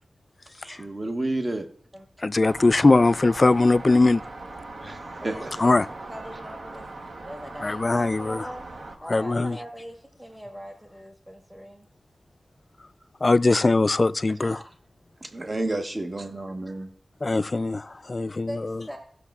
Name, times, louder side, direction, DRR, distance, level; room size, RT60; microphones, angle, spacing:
voice 1, 0.6-1.7 4.8-5.6 14.4-14.7 15.2-16.9, right 2 dB, 40° right, 1.2 m, -31 dB
voice 2, 2.2-4.2 5.6-5.8 7.6-8.5 9.1-9.6 13.2-14.6 17.2-18.8, left 3 dB, 45° left, 0.3 m, -21 dB
sound 1, 2.5-9.0, right 2 dB, 75° right, 1.0 m, -40 dB
voice 3, 5.2-5.7 6.1-6.9 7.2-8.7 9.0-11.9 18.5-19.0, equal, 20° right, 1.5 m, -41 dB
16.5 x 6.4 x 2.4 m
cardioid pair, 40°, 0 cm